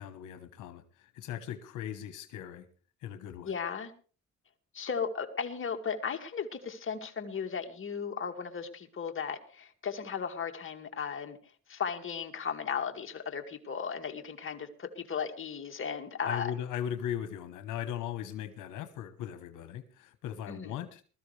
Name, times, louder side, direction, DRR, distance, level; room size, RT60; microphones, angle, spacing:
voice 1, 0.0-2.7 3.0-3.5 16.2-21.0, left 10 dB, 90° left, 8 dB, 1.2 m, -38 dB
voice 2, 3.5-3.9 4.7-11.4 11.7-16.5 20.5-20.8, left 6 dB, 45° left, 4 dB, 2.2 m, -36 dB
21.0 x 13.5 x 3.3 m, 0.38 s
cardioid pair, 90°, 30 cm